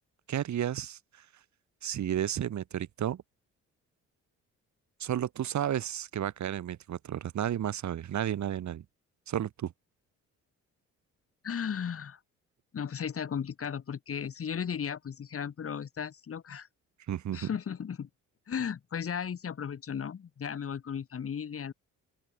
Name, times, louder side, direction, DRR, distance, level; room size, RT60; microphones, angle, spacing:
voice 1, 0.3-1.3 1.8-3.2 5.0-8.8 9.3-9.7 17.1-17.5, right 10 dB, 65° right, 5.8 m, -32 dB
voice 2, 11.4-12.2 12.7-16.7 17.3-18.1 18.5-21.7, left 7 dB, 50° left, 3.8 m, -35 dB
cardioid pair, 90°, 30 cm